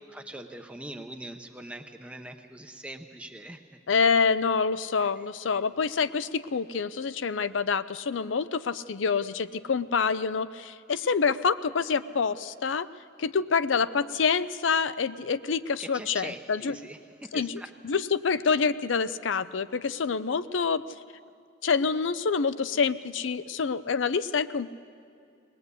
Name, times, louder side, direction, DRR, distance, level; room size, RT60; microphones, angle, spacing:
voice 1, 0.1-3.6 5.0-5.6 15.8-17.7, right 1 dB, 5° right, 4 dB, 0.7 m, -42 dB
voice 2, 3.9-12.9 13.2-16.8 17.3-20.8 21.6-24.7, left 5 dB, 90° left, 14 dB, 0.5 m, -27 dB
20.0 x 20.0 x 8.2 m, 2.4 s
head